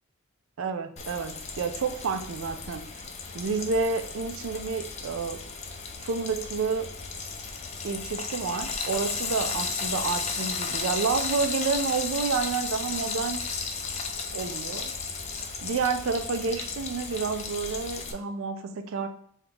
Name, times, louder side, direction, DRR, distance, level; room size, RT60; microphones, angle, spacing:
voice 1, 0.6-2.9 3.3-5.5 6.0-6.9 7.8-13.4 14.3-14.9 15.6-19.1, right 5 dB, 75° right, 8 dB, 0.4 m, -29 dB
Frying (food), 1.0-18.1, left 5 dB, 30° left, 0.4 m, -34 dB
5.2 x 2.4 x 2.9 m, 0.63 s
head